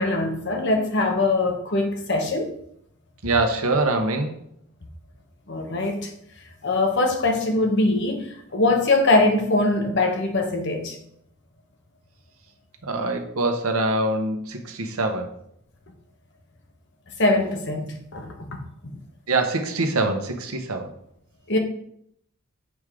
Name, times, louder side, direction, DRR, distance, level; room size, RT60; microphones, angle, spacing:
voice 1, 0.0-2.5 5.5-6.1 6.6-11.0 17.2-18.6 21.5-21.6, left 2 dB, 55° left, 1.1 m, -22 dB
voice 2, 3.2-4.3 12.9-15.3 19.3-20.9, right 2 dB, 80° right, 1.0 m, -24 dB
7.2 x 4.9 x 3.7 m
head